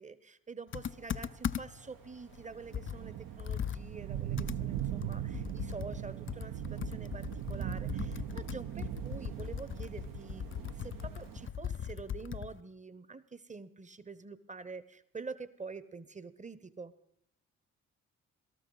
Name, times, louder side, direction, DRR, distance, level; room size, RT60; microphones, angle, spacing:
voice 1, 0.0-16.9, right 4 dB, 20° right, 15 dB, 0.9 m, -47 dB
Computer keyboard, 0.7-1.9 2.3-2.4 2.7-12.6, left 9 dB, 30° left, 0.5 m, -39 dB
sound 1, 1.0-11.5, right 11 dB, 55° right, 0.8 m, -40 dB
18.0 x 13.0 x 4.0 m, 0.72 s
hypercardioid pair, 45°, 39 cm